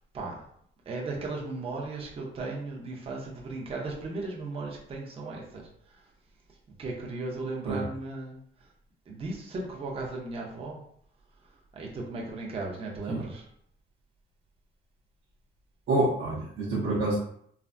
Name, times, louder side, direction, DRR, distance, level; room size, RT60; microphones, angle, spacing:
voice 1, 0.9-5.7 6.8-8.4 9.1-10.8 11.7-13.4, right 3 dB, 30° right, -2 dB, 0.5 m, -36 dB
voice 2, 15.9-17.2, right 2 dB, 60° right, -6 dB, 0.7 m, -27 dB
3.2 x 2.0 x 2.5 m, 0.66 s
cardioid pair, 160°, 21 cm